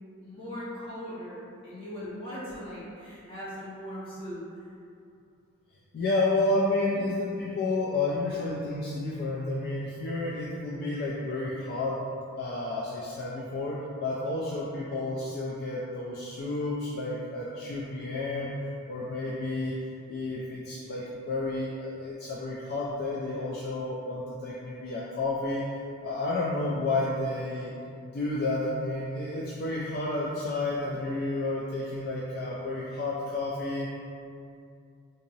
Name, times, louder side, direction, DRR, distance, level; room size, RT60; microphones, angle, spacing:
voice 1, 0.2-4.4, equal, 25° left, -11 dB, 1.3 m, -39 dB
voice 2, 5.9-12.0 12.4-18.6 18.9-19.8 20.1-27.7 28.1-33.9, left 2 dB, 50° left, -5 dB, 0.3 m, -31 dB
3.9 x 2.7 x 2.7 m, 2.5 s
head